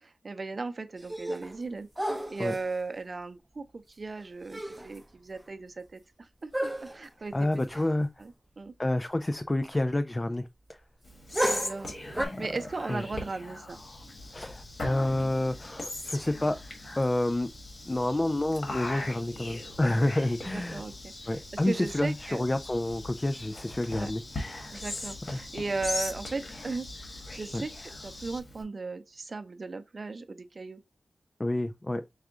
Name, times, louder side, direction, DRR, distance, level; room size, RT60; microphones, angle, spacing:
voice 1, 0.0-1.9 2.3-7.3 8.2-8.7 11.5-13.8 20.4-22.4 23.9-24.1 24.7-27.7 28.0-30.8, right 3 dB, 55° right, 0.5 m, -37 dB
sound 1, 1.0-1.6 2.0-2.7 4.2-4.3 4.5-5.0 5.4-5.5 6.5-7.1 7.7-7.9 8.2-8.3 11.3-12.3, right 1 dB, 10° right, 0.7 m, -32 dB
voice 2, 7.3-8.1 8.8-10.5 12.2-13.0 14.3-16.6 17.0-17.5 17.8-20.8 21.2-24.2 25.3-25.4 27.5-27.6 31.4-32.0, left 1 dB, 25° left, 0.3 m, -29 dB
Whispering, 11.0-28.6, left 2 dB, 70° left, 1.6 m, -40 dB
sound 2, 13.7-28.4, left 2 dB, 50° left, 0.8 m, -47 dB
4.8 x 2.3 x 3.6 m
wide cardioid pair, 70°, 0 cm